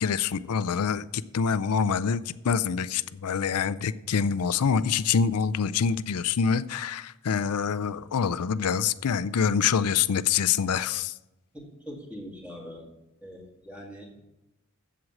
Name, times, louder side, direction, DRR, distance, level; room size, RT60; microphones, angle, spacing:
voice 1, 0.0-11.1, left 6 dB, 90° left, 14 dB, 0.5 m, -26 dB
voice 2, 11.5-12.9 13.2-14.1, equal, 5° right, -1 dB, 2.0 m, -42 dB
7.8 x 7.8 x 7.2 m, 0.95 s
head